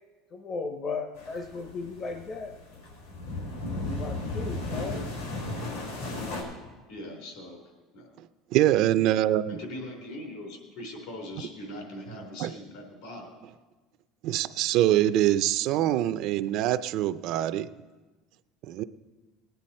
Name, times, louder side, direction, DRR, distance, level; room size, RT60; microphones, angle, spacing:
voice 1, 0.3-2.5 3.6-5.1, left 4 dB, 35° left, 5 dB, 0.7 m, -36 dB
sound 1, 1.1-6.4, left 2 dB, 85° left, 3.9 m, -35 dB
voice 2, 6.9-7.6 7.9-8.1 9.5-13.3, left 1 dB, 65° left, 2 dB, 3.5 m, -41 dB
voice 3, 8.5-9.6 12.4-12.5 14.2-17.7 18.7-18.8, right 13 dB, 55° right, 13 dB, 0.4 m, -24 dB
19.0 x 9.2 x 4.2 m, 1.2 s
cardioid pair, 155°, 0 cm